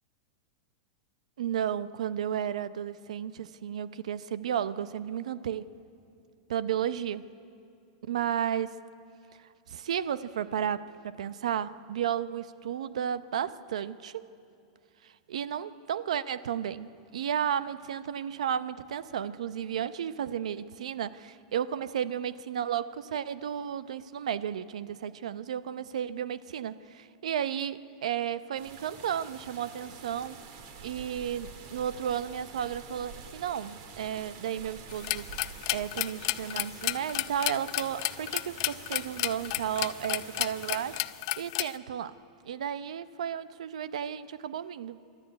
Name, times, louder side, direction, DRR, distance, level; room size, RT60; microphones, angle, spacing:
voice 1, 1.4-5.7 6.5-7.3 8.0-8.8 9.7-14.3 15.0-30.4 30.8-35.4 35.7-41.0 41.4-42.2 42.4-45.0, right 9 dB, 90° right, 15 dB, 0.7 m, -33 dB
sound 1, 28.6-41.0, right 5 dB, 50° right, 2.2 m, -47 dB
sound 2, 34.9-41.7, left 20 dB, 50° left, 0.5 m, -32 dB
25.5 x 12.5 x 9.6 m, 2.5 s
supercardioid pair, 145°, 3 cm